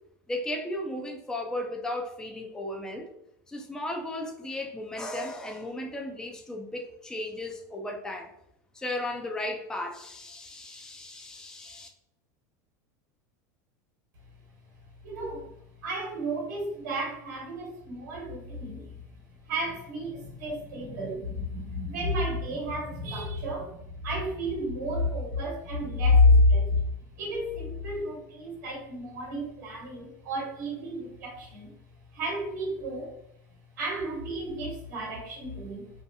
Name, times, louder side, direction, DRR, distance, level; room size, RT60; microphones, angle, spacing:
voice 1, 0.3-3.1 3.5-8.3 8.7-11.9, left 1 dB, 5° left, 2 dB, 0.4 m, -35 dB
voice 2, 15.0-15.5 15.8-19.0 19.3-31.7 32.1-33.2 33.8-35.9, left 2 dB, 75° right, -2 dB, 1.0 m, -29 dB
2.8 x 2.2 x 2.5 m, 0.75 s
hypercardioid pair, 105°, 10 cm